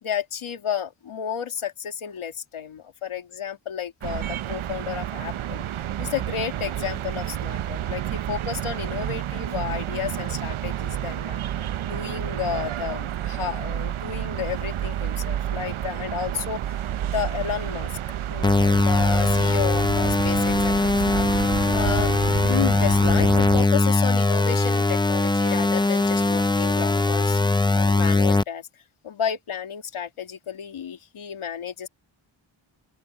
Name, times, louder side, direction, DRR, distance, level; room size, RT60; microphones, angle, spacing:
voice 1, 0.0-5.6 6.0-11.4 11.9-16.6 17.0-17.9 18.3-21.3 21.7-22.1 22.5-27.4 27.7-28.7 29.0-31.9, left 8 dB, 90° left, 2.2 m, -32 dB
sound 1, 4.0-23.7, right 11 dB, 80° right, 0.8 m, -30 dB
sound 2, 18.4-28.4, left 2 dB, 10° left, 0.5 m, -21 dB
open air
wide cardioid pair, 150°, 48 cm